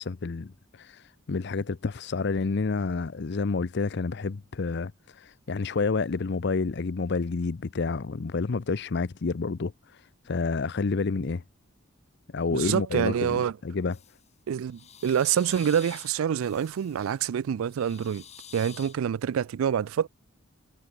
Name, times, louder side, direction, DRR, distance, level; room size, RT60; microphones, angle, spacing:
voice 1, 0.0-11.4 12.3-14.0, left 4 dB, 55° left, 0.6 m, -29 dB
voice 2, 12.5-13.5 14.5-18.2 18.5-20.1, right 8 dB, 80° right, 0.3 m, -26 dB
sound 1, 13.9-14.3 14.7-17.2 17.7-19.0, left 9 dB, 30° left, 2.4 m, -49 dB
head